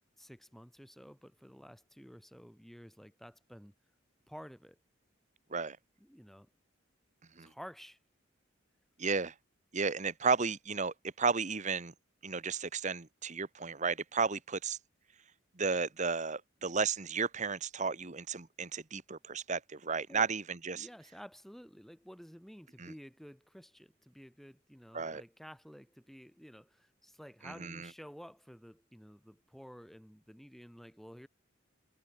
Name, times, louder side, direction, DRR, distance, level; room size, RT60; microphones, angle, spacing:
voice 1, 0.0-3.7 4.3-4.8 6.0-6.5 7.4-8.0 20.1-20.3 20.7-31.3, equal, ahead, 2.3 m, -52 dB
voice 2, 9.0-9.3 9.7-11.9 12.2-14.8 15.6-20.9 22.8-22.9 24.9-25.2 27.4-27.9, right 5 dB, 40° right, 1.2 m, -33 dB
head